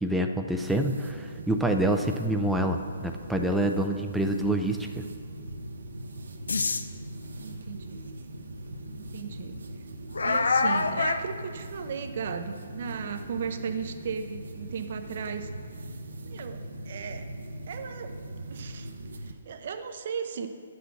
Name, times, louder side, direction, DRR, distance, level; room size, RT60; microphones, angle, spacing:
voice 1, 0.0-5.0, right 1 dB, ahead, 4 dB, 0.4 m, -27 dB
sound 1, 0.6-19.3, right 1 dB, 85° right, 1.0 m, -40 dB
sound 2, 6.5-6.8 8.0-8.1 8.6-8.7 10.1-11.3, left 4 dB, 90° left, 0.5 m, -25 dB
voice 2, 7.4-8.1 8.9-9.6 10.2-15.5 16.2-17.3 17.7-18.1 18.5-18.9 19.2-20.5, right 6 dB, 55° right, 7 dB, 0.6 m, -36 dB
10.0 x 6.2 x 5.9 m, 2.2 s
hypercardioid pair, 155°, 0 cm